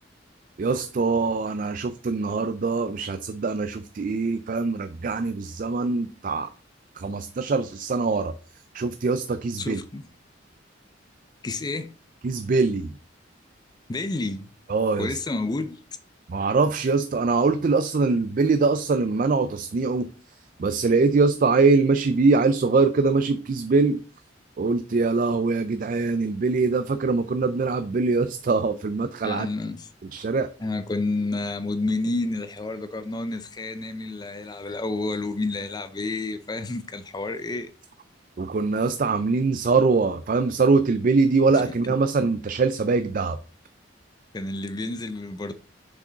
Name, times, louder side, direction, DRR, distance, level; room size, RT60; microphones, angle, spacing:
voice 1, 0.6-6.5 7.0-8.3 8.7-9.8 12.2-12.9 14.7-15.1 16.3-20.1 20.6-24.0 24.6-29.5 30.1-30.5 38.4-43.4, right 4 dB, 45° right, 0.4 m, -23 dB
voice 2, 9.6-10.1 11.4-11.9 13.9-14.5 15.0-15.8 29.2-29.9 30.6-37.7 41.5-41.6 44.3-45.5, left 2 dB, 20° left, 0.4 m, -30 dB
6.8 x 5.0 x 3.9 m
head